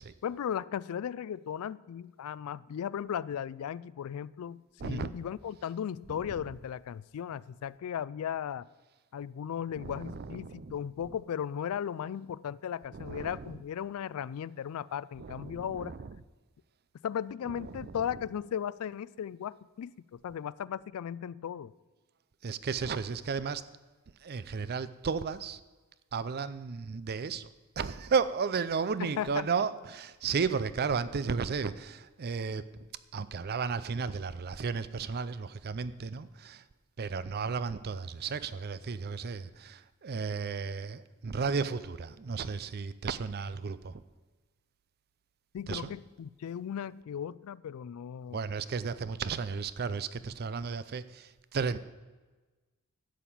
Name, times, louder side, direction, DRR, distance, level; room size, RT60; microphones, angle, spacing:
voice 1, 0.2-8.7 9.1-15.9 17.0-21.7 29.0-29.5 45.5-48.4, left 8 dB, 70° left, 21 dB, 0.3 m, -36 dB
voice 2, 4.8-5.1 9.7-10.7 11.0-11.1 12.9-13.5 15.2-16.2 17.6-18.0 22.4-23.6 24.2-25.6 26.1-27.5 27.8-32.7 33.1-36.6 37.0-44.0 45.7-46.0 48.3-51.8, right 5 dB, 45° right, 15 dB, 0.5 m, -34 dB
11.5 x 5.9 x 8.5 m, 1.3 s
head